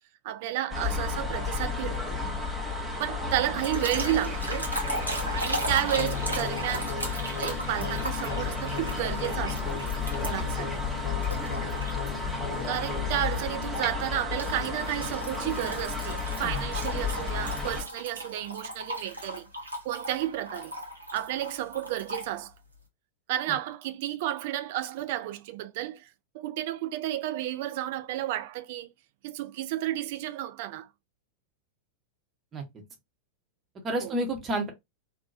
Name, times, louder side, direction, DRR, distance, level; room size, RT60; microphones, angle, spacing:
voice 1, 0.2-2.2 3.0-4.7 5.3-7.0 7.4-9.8 10.2-10.8 12.6-19.5 19.8-20.7 21.1-22.5 23.3-26.1 26.3-28.9 29.2-30.9 34.0-34.1, right 13 dB, 50° right, 0.3 m, -32 dB
sound 1, 0.7-17.8, left 4 dB, 5° left, 0.8 m, -32 dB
sound 2, 3.6-10.6 11.2-12.1 12.5-12.8 14.4-22.3, right 1 dB, 85° right, 0.7 m, -37 dB
sound 3, 6.0-14.9, left 6 dB, 55° left, 0.6 m, -39 dB
voice 2, 32.5-32.8 33.8-34.7, right 1 dB, 25° right, 0.9 m, -31 dB
2.8 x 2.2 x 2.3 m
figure-of-eight pair, 90°, 0 cm